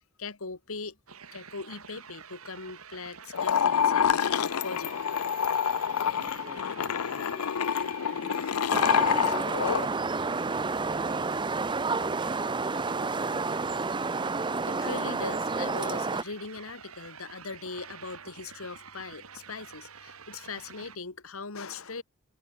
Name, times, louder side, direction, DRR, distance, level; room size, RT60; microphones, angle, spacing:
voice 1, 0.2-1.0 1.3-5.0 14.7-22.0, left 4 dB, 70° left, 1.8 m, -40 dB
sound 1, 1.1-21.0, right 6 dB, 75° right, 2.6 m, -48 dB
sound 2, 3.3-9.9, left 7 dB, 90° left, 0.6 m, -27 dB
voice 2, 5.8-10.5, right 2 dB, 45° right, 6.5 m, -51 dB
sound 3, 8.7-16.2, right 4 dB, 20° right, 0.7 m, -30 dB
head